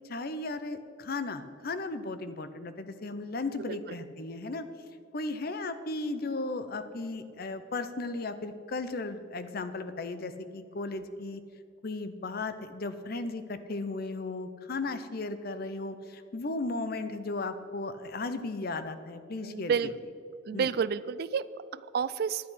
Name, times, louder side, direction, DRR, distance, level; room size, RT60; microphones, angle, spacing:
voice 1, 0.1-4.6 5.1-11.4 11.8-19.7 20.5-20.7, left 3 dB, 50° left, 11 dB, 0.7 m, -35 dB
voice 2, 19.4-19.9 20.5-22.5, right 6 dB, 55° right, 16 dB, 0.3 m, -31 dB
11.5 x 8.4 x 5.7 m, 2.5 s
head